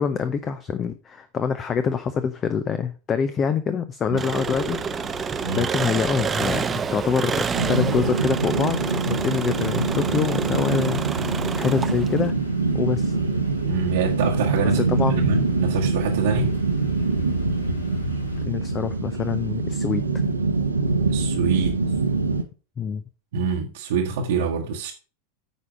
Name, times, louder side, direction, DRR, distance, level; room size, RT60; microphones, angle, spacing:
voice 1, 0.0-4.8 5.6-8.8 9.0-12.3 12.7-13.1 14.7-15.4 18.4-20.0 22.8-23.0, left 6 dB, 25° left, 0.6 m, -25 dB
Engine, 4.2-12.3, right 6 dB, 20° right, 0.5 m, -28 dB
sound 1, 4.3-18.4, left 3 dB, 75° left, 2.2 m, -40 dB
sound 2, 7.5-22.4, right 3 dB, 80° right, 1.0 m, -24 dB
voice 2, 13.7-16.6 21.1-21.8 23.3-24.9, right 5 dB, 55° right, 1.2 m, -26 dB
9.4 x 4.9 x 5.0 m
figure-of-eight pair, 90°, 0 cm